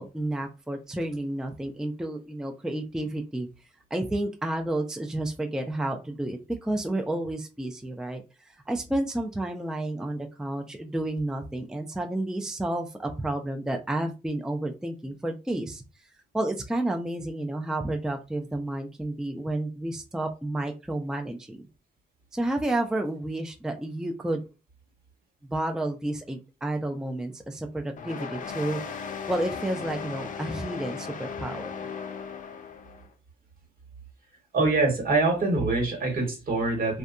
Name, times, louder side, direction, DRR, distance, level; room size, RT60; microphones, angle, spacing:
voice 1, 0.0-3.5 3.9-15.8 16.3-21.6 22.3-24.4 25.5-29.0 29.3-31.7, right 1 dB, 5° right, 4 dB, 0.4 m, -31 dB
sound 1, 28.0-33.1, left 6 dB, 55° left, 0.5 m, -37 dB
voice 2, 34.5-37.0, right 3 dB, 65° right, 3 dB, 1.2 m, -24 dB
2.6 x 2.2 x 2.4 m, 0.29 s
cardioid pair, 80°, 16 cm